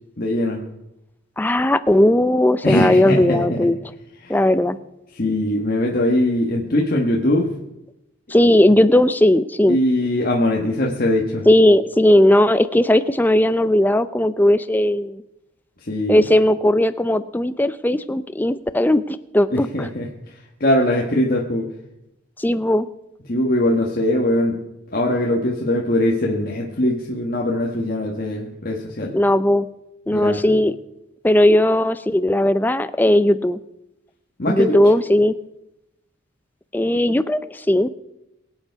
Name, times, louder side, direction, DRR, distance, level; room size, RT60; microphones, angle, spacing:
voice 1, 0.2-0.6 2.6-3.6 4.2-4.4 5.1-7.5 9.7-11.5 15.8-16.2 19.5-21.7 23.3-24.5 24.9-29.1 30.1-30.5 34.4-34.8, left 1 dB, 45° left, -1 dB, 1.5 m, -21 dB
voice 2, 1.4-3.8 4.3-4.8 8.3-9.8 11.5-15.2 16.1-19.9 22.4-22.9 29.1-29.7 30.1-30.8 31.2-33.6 34.5-35.4 36.7-37.9, left 1 dB, 10° left, 13 dB, 0.4 m, -17 dB
23.0 x 8.2 x 4.7 m, 0.91 s
head